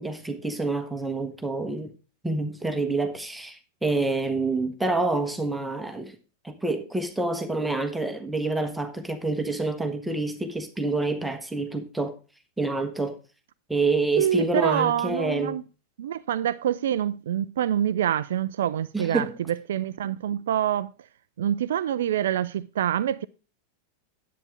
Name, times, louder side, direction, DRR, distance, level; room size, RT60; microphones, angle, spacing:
voice 1, 0.0-1.9 2.2-6.2 6.4-12.2 12.6-13.2 13.7-15.6 18.9-19.3, right 2 dB, 5° right, 1.2 m, -27 dB
voice 2, 14.2-15.6 16.0-21.1 21.4-23.3, right 10 dB, 60° right, 0.4 m, -26 dB
10.5 x 8.4 x 3.3 m
figure-of-eight pair, 90°, 0 cm